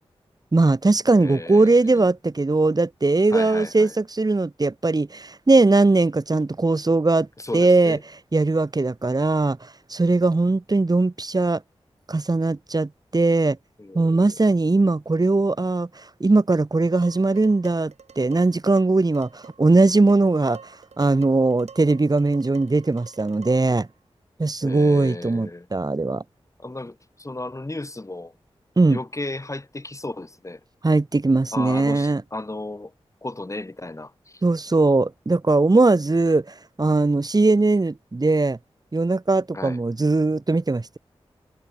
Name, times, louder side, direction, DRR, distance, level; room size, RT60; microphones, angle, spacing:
voice 1, 0.5-7.3 7.5-8.0 8.3-9.6 9.9-11.6 12.1-13.6 13.9-15.9 16.2-20.6 21.0-23.9 24.4-26.2 28.8-29.0 30.8-32.2 34.4-38.6 38.9-41.0, right 3 dB, 35° right, 1.5 m, -20 dB
voice 2, 1.2-2.0 3.3-3.9 7.4-8.0 13.8-14.3 24.6-25.7 26.6-28.3 28.9-30.6 31.5-32.9 33.2-34.4 39.5-39.8, left 2 dB, 30° left, 2.4 m, -34 dB
Dishes pots and pans, 17.0-23.9, right 6 dB, 90° right, 6.9 m, -47 dB
cardioid pair, 45°, 11 cm